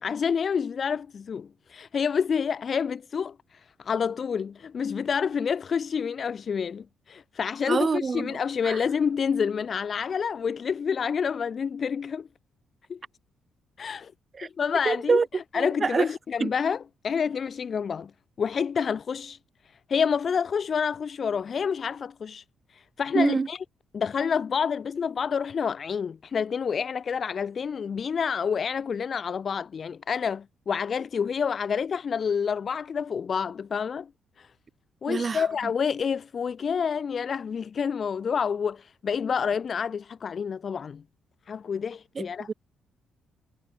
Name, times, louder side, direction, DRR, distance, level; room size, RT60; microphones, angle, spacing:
voice 1, 0.0-12.3 12.9-13.0 13.8-14.1 14.6-18.1 18.4-19.4 19.9-22.4 22.7-23.6 23.9-34.1 34.4-34.5 35.0-41.0 41.5-42.5, left 6 dB, 35° left, 1.1 m, -28 dB
voice 2, 7.7-8.4 8.6-8.8 14.4-14.5 14.8-15.2 15.5-16.1 16.4-16.5 23.1-23.5 35.1-35.4 42.1-42.5, right 5 dB, 25° right, 1.4 m, -25 dB
cardioid pair, 170°, 0 cm